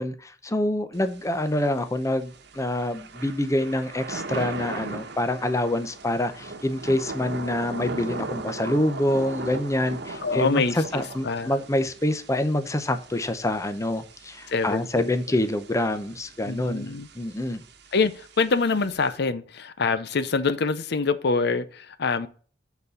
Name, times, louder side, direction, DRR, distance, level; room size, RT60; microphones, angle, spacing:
voice 1, 0.0-17.6, left 1 dB, 15° left, 0.7 m, -26 dB
Thunder / Rain, 0.9-19.2, right 3 dB, 65° right, 1.1 m, -39 dB
voice 2, 10.2-11.5 14.5-15.1 16.4-17.1 17.9-22.3, left 4 dB, 65° left, 0.7 m, -25 dB
8.1 x 4.1 x 6.8 m
head